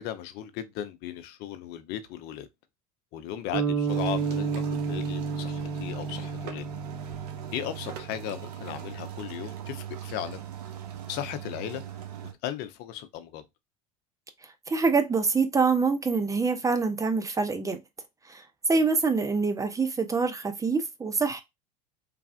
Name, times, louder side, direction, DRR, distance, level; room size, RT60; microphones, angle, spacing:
voice 1, 0.0-2.5 3.1-6.7 7.5-10.4 11.1-11.8 12.4-13.4, left 11 dB, 55° left, 0.6 m, -36 dB
sound 1, 3.5-7.8, right 5 dB, 55° right, 1.1 m, -31 dB
sound 2, 3.9-12.3, right 10 dB, 80° right, 0.6 m, -39 dB
voice 2, 14.7-17.8 18.3-18.4 18.7-21.4, right 4 dB, 15° right, 0.5 m, -25 dB
3.2 x 2.4 x 2.3 m
hypercardioid pair, 80°, 20 cm